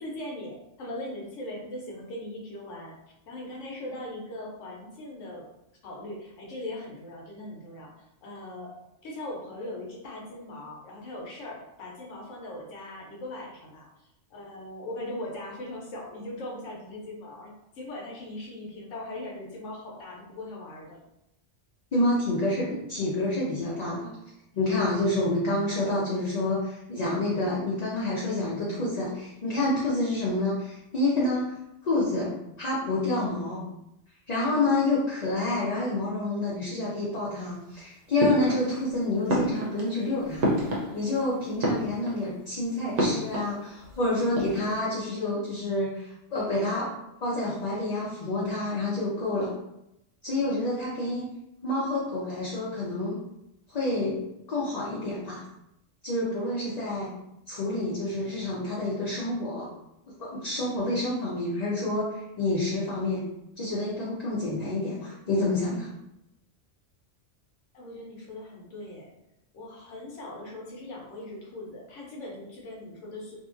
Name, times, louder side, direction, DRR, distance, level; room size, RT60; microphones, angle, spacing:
voice 1, 0.0-3.0 3.3-5.5 5.8-7.9 8.2-13.9 14.3-21.0 67.7-69.1 69.5-73.3, left 1 dB, 85° left, -2 dB, 1.1 m, -40 dB
voice 2, 21.9-24.1 24.5-31.6 31.8-32.3 32.6-33.6 34.3-40.5 40.9-46.9 47.2-49.5 50.2-51.3 51.6-53.2 53.7-54.2 54.5-55.4 56.0-57.1 57.5-59.7 60.2-63.2 63.6-65.9, left 2 dB, 50° left, -6 dB, 0.5 m, -28 dB
sound 1, 38.2-38.9 39.3-41.2 41.5-42.4 43.0-43.9 44.2-44.8, equal, 85° right, 1.1 m, -29 dB
2.7 x 2.5 x 2.4 m, 0.85 s
omnidirectional pair, 1.2 m